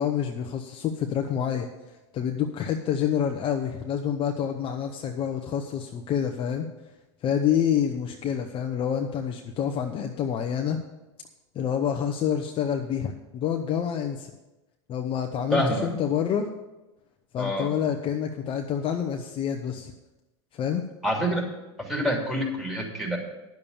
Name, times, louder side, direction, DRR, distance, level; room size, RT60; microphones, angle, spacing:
voice 1, 0.0-6.7 7.2-10.8 11.5-14.3 14.9-16.5 17.3-19.9 20.5-20.9, left 8 dB, 35° left, 4 dB, 0.8 m, -27 dB
voice 2, 15.5-15.9 17.4-17.7 21.0-21.4 21.8-23.2, equal, ahead, 0 dB, 2.9 m, -26 dB
10.5 x 6.8 x 7.1 m, 1.1 s
hypercardioid pair, 105°, 15 cm